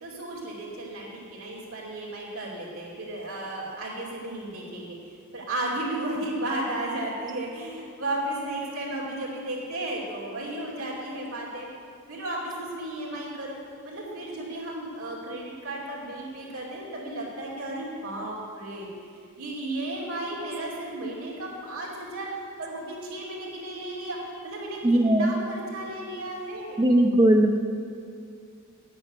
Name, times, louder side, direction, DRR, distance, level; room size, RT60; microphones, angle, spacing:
voice 1, 0.0-5.0 5.3-11.7 12.1-13.6 13.8-18.9 19.4-26.9, right 1 dB, 85° right, -4 dB, 2.8 m, -34 dB
voice 2, 24.8-25.3 26.8-27.6, right 1 dB, 20° right, 3 dB, 0.5 m, -19 dB
9.4 x 8.4 x 6.5 m, 2.4 s
head